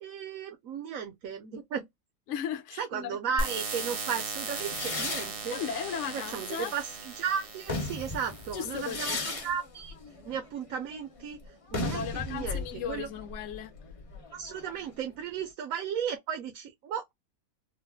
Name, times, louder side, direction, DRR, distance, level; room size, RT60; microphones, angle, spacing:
voice 1, 0.0-1.9 2.8-5.6 6.0-9.9 10.3-11.4 11.7-13.1 14.3-17.1, right 7 dB, 70° right, 1.2 m, -35 dB
voice 2, 2.3-3.2 5.5-6.7 8.5-9.2 11.8-13.7, left 8 dB, 60° left, 0.9 m, -36 dB
sound 1, 3.4-9.4, right 3 dB, 45° right, 0.4 m, -38 dB
sound 2, 4.5-7.0 7.5-15.0, left 3 dB, 30° left, 0.6 m, -37 dB
3.9 x 2.0 x 2.3 m
omnidirectional pair, 1.5 m